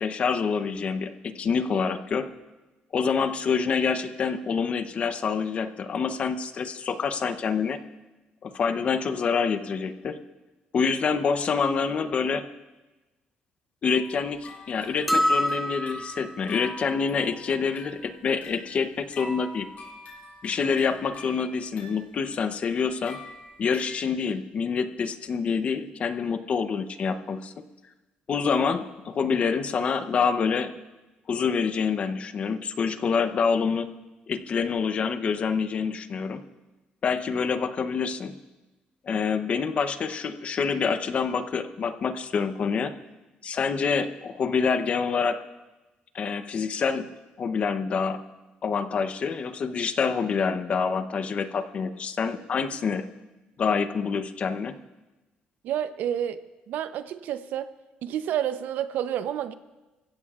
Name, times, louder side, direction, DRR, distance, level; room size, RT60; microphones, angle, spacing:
voice 1, 0.0-2.3 2.9-7.8 8.4-10.2 10.7-12.5 13.8-19.7 20.4-23.2 23.6-27.5 28.3-30.7 31.3-33.9 34.3-36.4 37.0-38.3 39.0-42.9 43.4-45.4 46.1-47.1 47.4-48.2 48.6-53.1 53.6-54.8, left 5 dB, 40° left, 10 dB, 0.7 m, -26 dB
sound 1, 13.9-24.0, left 2 dB, 60° left, 5.7 m, -45 dB
sound 2, 15.1-16.4, equal, ahead, 0.5 m, -25 dB
voice 2, 55.6-56.4 56.7-57.7 58.0-59.5, right 10 dB, 75° right, 11 dB, 0.7 m, -29 dB
26.5 x 15.5 x 2.4 m, 1.1 s
cardioid pair, 140°, 3 cm